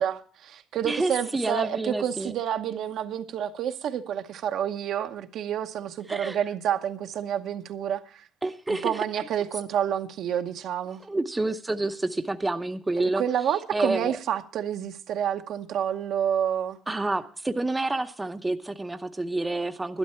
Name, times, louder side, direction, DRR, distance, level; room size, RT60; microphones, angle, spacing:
voice 1, 0.0-8.3 8.7-11.0 13.2-16.8, right 9 dB, 65° right, 0.9 m, -29 dB
voice 2, 0.8-2.3 6.1-6.4 8.4-8.9 11.0-13.2 13.7-14.2 16.9-20.0, right 2 dB, 15° right, 0.8 m, -28 dB
12.0 x 11.5 x 4.4 m
supercardioid pair, 90°, 0 cm